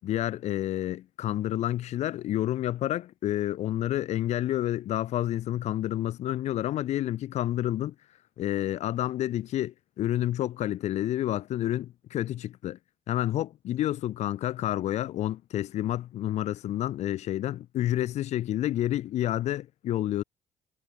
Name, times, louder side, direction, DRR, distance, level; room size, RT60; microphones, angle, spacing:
voice 1, 0.0-7.9 8.4-12.8 13.1-20.2, left 13 dB, 65° left, 7.6 m, -29 dB
hypercardioid pair, 55°, 12 cm